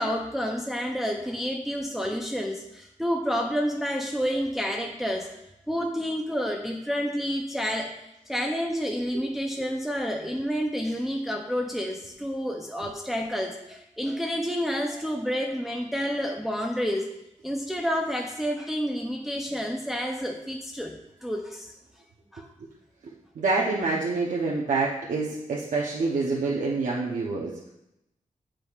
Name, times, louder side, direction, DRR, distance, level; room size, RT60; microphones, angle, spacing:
voice 1, 0.0-5.3 5.7-17.1 17.4-21.7 22.3-22.5, equal, ahead, 1 dB, 0.5 m, -29 dB
voice 2, 23.3-27.6, right 3 dB, 80° right, -4 dB, 0.8 m, -27 dB
9.0 x 5.0 x 2.4 m, 0.86 s
wide cardioid pair, 130°, 13 cm